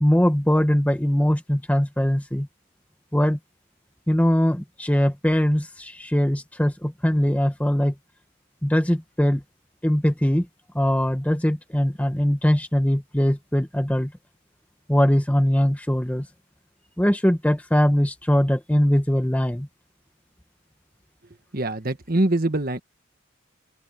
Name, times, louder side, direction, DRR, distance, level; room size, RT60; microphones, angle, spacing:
voice 1, 0.0-2.5 3.1-3.4 4.1-7.9 8.6-9.4 9.8-10.5 10.7-14.1 14.9-16.3 17.0-19.7, equal, 5° left, 1.0 m, -21 dB
voice 2, 21.5-22.8, right 1 dB, 45° right, 1.5 m, -23 dB
open air
head